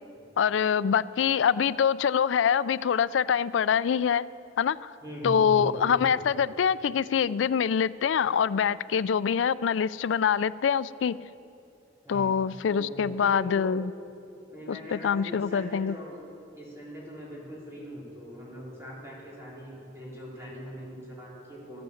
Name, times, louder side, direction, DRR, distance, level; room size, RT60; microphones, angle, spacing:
voice 1, 0.4-4.3 4.6-4.9 5.2-11.2 12.1-13.9 14.7-15.9, left 7 dB, 90° left, 17 dB, 0.4 m, -25 dB
voice 2, 5.0-6.1 12.0-12.3 12.7-13.7 14.5-16.2 16.5-21.8, equal, 15° right, -6 dB, 3.9 m, -40 dB
14.5 x 13.0 x 7.2 m, 2.6 s
head